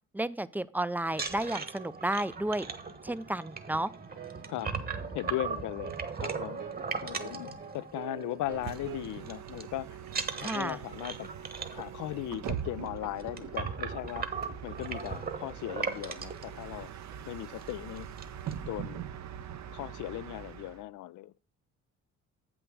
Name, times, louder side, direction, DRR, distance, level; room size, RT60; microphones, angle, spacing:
voice 1, 0.1-2.7 3.0-3.9 10.4-10.8, right 1 dB, 5° right, 0.4 m, -32 dB
sound 1, 1.1-8.2 8.5-8.8 9.0-9.6 10.1-16.4 17.1-17.2 17.5-17.7 18.0-18.5, right 5 dB, 30° right, 1.3 m, -38 dB
sound 2, 4.2-9.1, right 9 dB, 90° right, 2.0 m, -46 dB
voice 2, 4.5-4.9 5.1-6.6 7.0-10.0 10.4-11.3 11.7-14.3 14.6-16.9 17.3-18.1 18.6-19.0 19.7-21.5, left 15 dB, 75° left, 0.5 m, -38 dB
Bus, 8.4-20.8, right 9 dB, 65° right, 0.8 m, -42 dB
7.8 x 6.2 x 4.7 m
cardioid pair, 90°, 30 cm